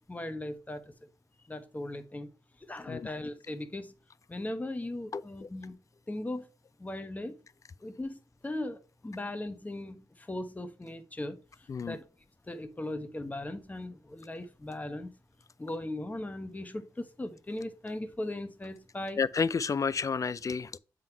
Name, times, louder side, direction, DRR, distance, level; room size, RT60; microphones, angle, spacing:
voice 1, 0.1-0.9 1.5-2.3 2.6-3.9 4.3-5.7 6.1-6.5 6.8-7.3 7.8-8.2 8.4-12.0 12.5-15.1 15.6-19.2, left 1 dB, 20° left, 1.0 m, -38 dB
voice 2, 5.1-5.5 11.7-12.0 19.2-20.8, left 5 dB, 40° left, 0.4 m, -31 dB
7.5 x 3.8 x 4.5 m
supercardioid pair, 55°, 8 cm